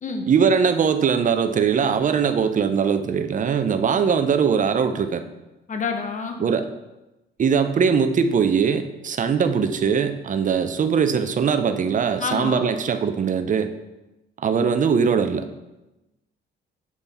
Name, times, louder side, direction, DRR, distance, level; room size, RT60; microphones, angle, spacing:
voice 1, 0.3-5.2 6.4-6.7 7.4-13.7 14.4-15.5, right 6 dB, 40° right, 9 dB, 0.6 m, -21 dB
voice 2, 5.7-6.4 12.2-12.7, left 5 dB, 40° left, 5 dB, 0.9 m, -28 dB
8.4 x 3.4 x 4.1 m, 0.99 s
cardioid pair, 90°, 20 cm